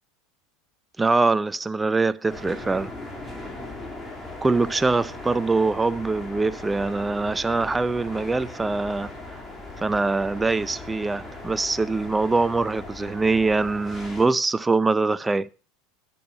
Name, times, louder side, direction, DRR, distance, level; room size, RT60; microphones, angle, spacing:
voice 1, 1.0-2.9 4.4-9.1 9.8-15.5, right 3 dB, 10° right, 0.4 m, -23 dB
sound 1, 2.3-14.3, left 2 dB, 10° left, 2.3 m, -38 dB
10.5 x 6.9 x 5.6 m
supercardioid pair, 120°, 0 cm